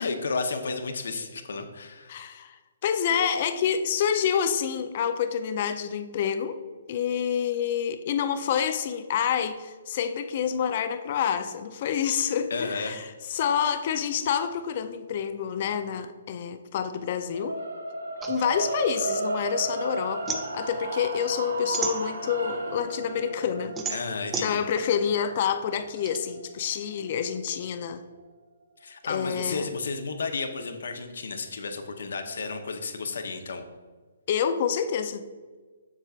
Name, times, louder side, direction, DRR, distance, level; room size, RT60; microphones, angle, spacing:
voice 1, 0.0-2.1 12.5-13.1 23.9-24.6 28.8-33.6, left 4 dB, 75° left, 6 dB, 0.8 m, -32 dB
voice 2, 2.1-6.6 6.9-17.6 18.3-23.8 24.4-28.0 29.1-29.7 34.3-35.2, left 8 dB, 45° left, 10 dB, 0.5 m, -28 dB
sound 1, 17.3-27.5, right 2 dB, 80° right, 0.8 m, -34 dB
sound 2, 18.2-19.7 20.0-22.6 23.0-26.2, right 5 dB, 15° right, 0.5 m, -35 dB
7.4 x 6.6 x 2.4 m, 1.4 s
hypercardioid pair, 145°, 0 cm